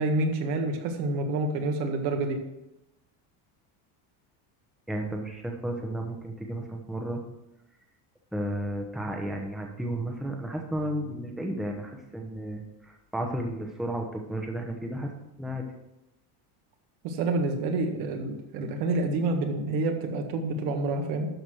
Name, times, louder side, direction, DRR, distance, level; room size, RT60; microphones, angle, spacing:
voice 1, 0.0-2.4 17.0-21.3, right 2 dB, 70° right, 4 dB, 1.8 m, -28 dB
voice 2, 4.9-7.2 8.3-15.1 15.4-15.6, right 1 dB, ahead, 2 dB, 0.9 m, -33 dB
12.0 x 4.8 x 6.3 m, 0.92 s
cardioid pair, 150°, 45 cm